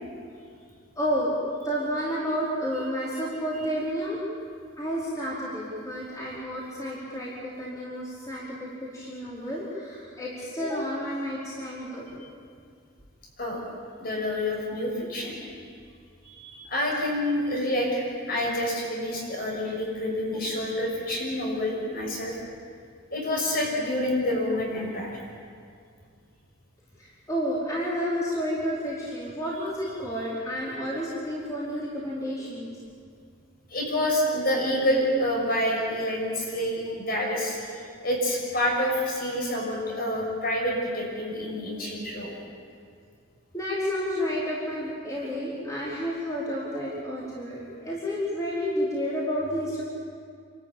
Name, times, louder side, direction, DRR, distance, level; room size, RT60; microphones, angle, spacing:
voice 1, 0.9-4.2 4.8-12.3 27.0-32.7 43.5-49.8, equal, 15° left, -8 dB, 4.6 m, -30 dB
voice 2, 14.0-15.4 16.2-22.3 23.1-25.2 33.7-37.6 38.0-42.3, left 1 dB, 45° left, -2 dB, 6.3 m, -28 dB
28.5 x 13.5 x 8.8 m, 2.2 s
head